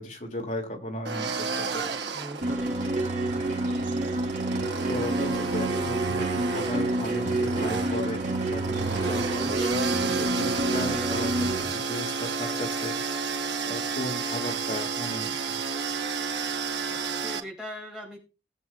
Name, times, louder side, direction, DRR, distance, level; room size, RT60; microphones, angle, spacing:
voice 1, 0.0-1.9 4.9-13.0 13.6-15.6, left 1 dB, 45° left, 1 dB, 3.0 m, -36 dB
sound 1, 1.0-17.4, right 4 dB, 90° right, 1.9 m, -31 dB
voice 2, 2.1-2.8 17.1-18.2, equal, 5° right, -2 dB, 4.6 m, -40 dB
sound 2, 2.4-11.6, right 2 dB, 45° right, 2.3 m, -28 dB
19.5 x 8.0 x 2.5 m, 0.31 s
head